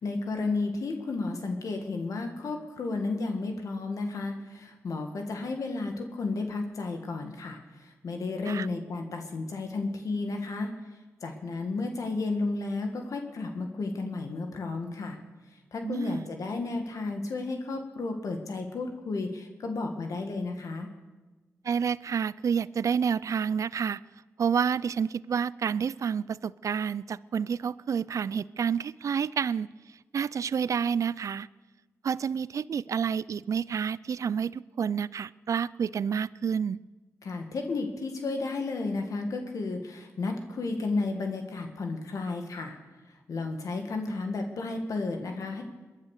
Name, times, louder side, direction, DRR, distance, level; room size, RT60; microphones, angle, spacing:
voice 1, 0.0-10.7 11.2-15.2 15.7-20.9 37.2-42.8 43.3-45.6, left 3 dB, 70° left, 4 dB, 1.9 m, -32 dB
voice 2, 15.8-16.3 21.6-24.0 24.4-29.7 30.1-31.5 32.0-36.8, right 7 dB, 65° right, 20 dB, 0.4 m, -29 dB
22.0 x 10.0 x 6.7 m, 1.2 s
cardioid pair, 50°, 6 cm